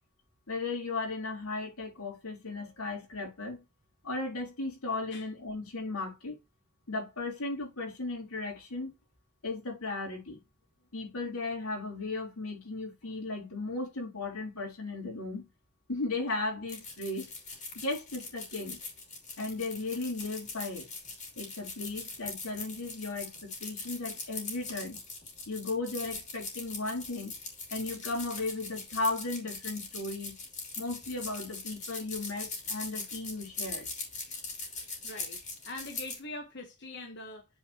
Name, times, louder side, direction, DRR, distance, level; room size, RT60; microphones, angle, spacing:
voice 1, 0.5-3.6 4.0-6.4 6.9-8.9 9.4-10.4 10.9-15.4 15.9-17.3 17.8-18.8 19.4-20.9 21.4-25.0 25.5-27.3 27.7-30.4 30.8-33.9, left 3 dB, 85° left, 3.6 m, -36 dB
sound 1, 16.7-36.2, left 3 dB, 35° left, 2.8 m, -41 dB
voice 2, 35.0-37.5, left 2 dB, 50° left, 1.2 m, -43 dB
8.6 x 4.5 x 2.9 m
head